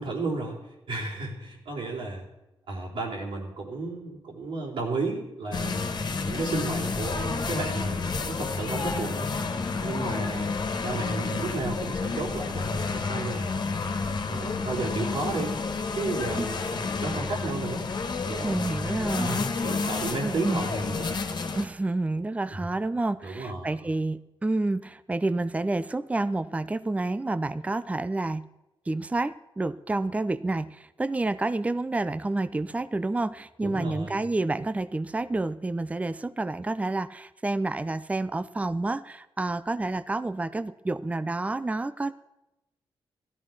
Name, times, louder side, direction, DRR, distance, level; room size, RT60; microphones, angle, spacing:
voice 1, 0.0-2.2 2.7-5.8 6.2-9.3 9.8-10.6 10.8-13.6 14.3-15.6 15.9-16.7 17.0-17.9 18.3-18.8 19.2-21.2 22.6-22.7 23.2-23.8 33.6-34.2, right 3 dB, 80° right, -4 dB, 4.1 m, -33 dB
sound 1, 5.5-21.7, left 4 dB, 55° left, 1.8 m, -30 dB
voice 2, 18.4-19.3 20.2-20.7 21.5-28.5 28.9-42.1, right 2 dB, 15° right, 14 dB, 0.6 m, -29 dB
16.0 x 13.0 x 6.0 m, 0.91 s
wide cardioid pair, 110°, 9 cm